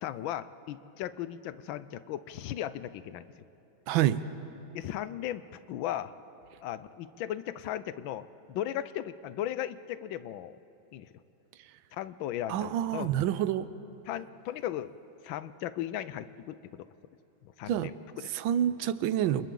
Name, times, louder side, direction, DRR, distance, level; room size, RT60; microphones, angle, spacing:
voice 1, 0.0-3.2 4.7-5.4 5.7-6.1 6.6-10.6 10.9-11.1 11.9-13.1 14.1-14.9 15.2-16.9 17.4-18.3, left 12 dB, 80° left, 14 dB, 1.4 m, -36 dB
voice 2, 3.9-4.2 12.5-13.7 17.7-17.9 18.3-19.5, right 11 dB, 85° right, 14 dB, 1.5 m, -27 dB
29.0 x 28.0 x 3.8 m, 2.9 s
omnidirectional pair, 2.1 m